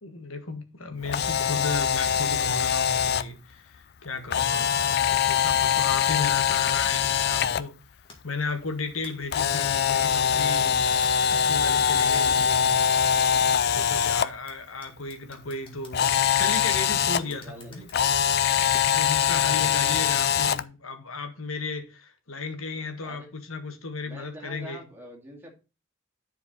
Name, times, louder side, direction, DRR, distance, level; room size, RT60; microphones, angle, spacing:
voice 1, 0.0-7.7 8.2-12.8 13.5-17.9 18.8-24.8, left 4 dB, 85° left, 1.7 m, -35 dB
Camera, 1.0-3.2 4.3-7.6 9.3-14.2 15.9-17.2 17.9-20.6, left 8 dB, 50° left, 0.4 m, -23 dB
sound 1, 4.5-19.2, left 3 dB, 25° left, 2.0 m, -53 dB
voice 2, 6.9-7.5 17.2-18.1 19.2-20.3 23.0-23.3 24.1-25.5, equal, 10° right, 2.4 m, -46 dB
10.5 x 4.6 x 4.2 m
head